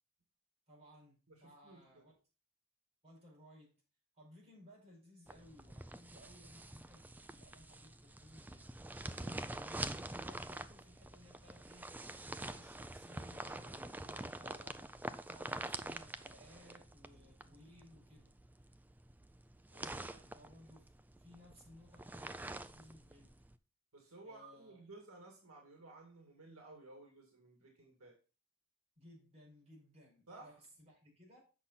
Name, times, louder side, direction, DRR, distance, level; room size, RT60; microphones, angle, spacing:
voice 1, 0.7-2.1 3.0-3.8 4.1-8.7 9.1-12.0 12.3-14.9 15.3-18.3 20.0-20.9 21.2-23.3 24.2-24.8 28.9-31.4, left 1 dB, 30° right, 4.9 m, -60 dB
voice 2, 1.3-2.1 19.7-20.8 23.9-28.2 30.3-30.6, right 2 dB, 85° right, 2.0 m, -57 dB
sound 1, 5.3-23.6, right 2 dB, 10° right, 0.3 m, -46 dB
8.3 x 5.8 x 4.0 m
head